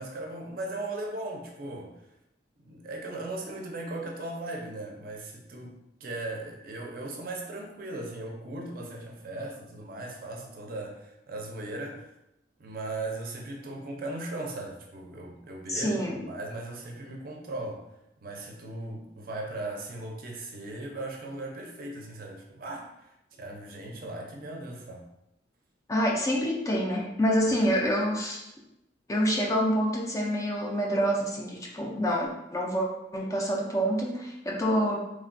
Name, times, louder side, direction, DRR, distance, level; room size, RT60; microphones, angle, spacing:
voice 1, 0.0-2.0 2.6-12.1 12.6-17.8 18.2-25.1 27.5-27.6, right 2 dB, 50° right, 0 dB, 0.5 m, -38 dB
voice 2, 15.7-16.2 25.9-28.4 29.1-35.0, equal, 15° left, -2 dB, 0.3 m, -27 dB
3.2 x 2.2 x 2.5 m, 0.87 s
head